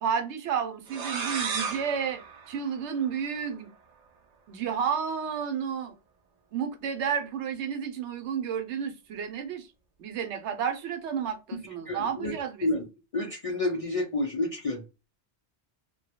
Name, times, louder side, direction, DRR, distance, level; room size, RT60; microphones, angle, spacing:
voice 1, 0.0-3.7 4.5-5.9 6.5-9.7 10.0-12.7, right 7 dB, 90° right, 0.9 m, -31 dB
sound 1, 0.9-3.5, right 5 dB, 55° right, 0.4 m, -35 dB
voice 2, 11.9-12.9 13.1-14.8, left 2 dB, 60° left, 0.3 m, -30 dB
2.2 x 2.1 x 2.7 m
omnidirectional pair, 1.1 m